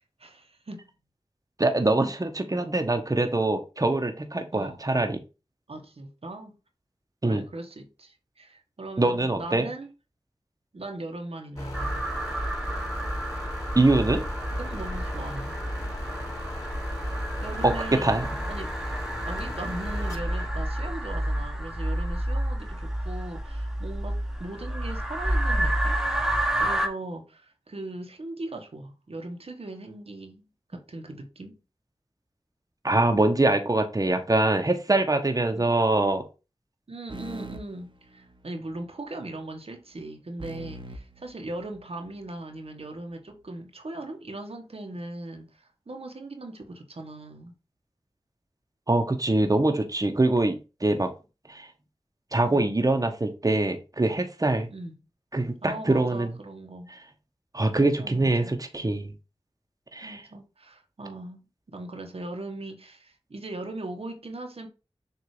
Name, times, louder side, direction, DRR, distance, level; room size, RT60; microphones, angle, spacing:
voice 1, 0.2-0.9 4.5-4.8 5.7-6.5 7.2-9.9 10.7-12.1 14.6-15.6 17.4-18.1 18.5-18.8 19.2-26.0 26.6-30.5 30.7-31.6 35.5-35.7 36.9-47.5 52.4-52.6 54.7-54.9 55.6-56.9 57.8-58.6 60.0-64.7, right 2 dB, 75° right, 1.3 m, -39 dB
voice 2, 1.6-5.2 7.2-7.4 9.0-9.7 13.7-14.2 17.6-18.3 32.8-36.2 48.9-51.1 51.5-51.7 52.3-54.7 55.3-56.3 56.9-57.0 57.5-59.1 59.9-60.2, right 2 dB, 35° right, 1.1 m, -24 dB
sound 1, 11.6-20.5, left 1 dB, 35° left, 3.4 m, -37 dB
sound 2, 11.7-26.9, right 1 dB, 5° right, 1.3 m, -30 dB
sound 3, 37.1-38.7 40.4-42.2, right 2 dB, 55° right, 1.1 m, -42 dB
6.9 x 2.8 x 4.9 m
wide cardioid pair, 40°, 10 cm